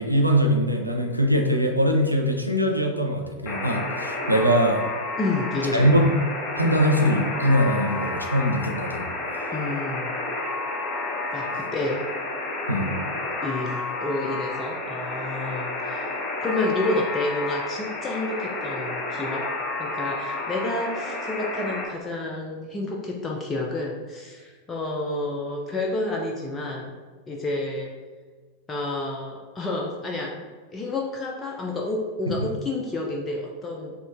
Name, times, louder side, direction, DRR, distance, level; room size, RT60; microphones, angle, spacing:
voice 1, 0.0-4.9 5.7-6.1 6.5-9.1 9.4-9.5 12.7-13.0 32.3-32.5, equal, 90° right, 1 dB, 0.4 m, -22 dB
Alarm, 3.5-21.8, left 2 dB, 30° left, 0.8 m, -31 dB
voice 2, 5.2-5.9 9.5-10.1 11.3-12.0 13.4-19.4 19.8-26.9 27.3-27.9 28.7-30.5 30.7-33.9, left 2 dB, 15° left, -2 dB, 0.4 m, -29 dB
4.9 x 2.3 x 2.4 m, 1.4 s
figure-of-eight pair, 90°, 0 cm